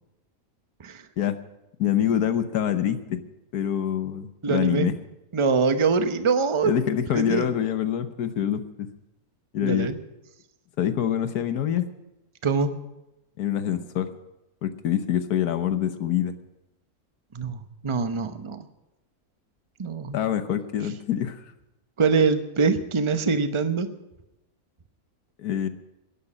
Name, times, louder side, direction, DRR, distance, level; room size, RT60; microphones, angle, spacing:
voice 1, 1.8-3.2 3.5-4.9 6.6-8.9 9.5-9.9 10.8-11.9 13.4-14.1 14.6-16.3 20.1-21.4 25.4-25.7, left 10 dB, 85° left, 11 dB, 1.5 m, -25 dB
voice 2, 4.4-4.9 5.3-6.8 7.1-7.5 9.6-10.0 12.4-12.7 17.3-18.6 19.8-20.2 22.0-23.9, right 5 dB, 25° right, 10 dB, 0.7 m, -24 dB
11.0 x 11.0 x 8.7 m, 0.97 s
omnidirectional pair, 1.6 m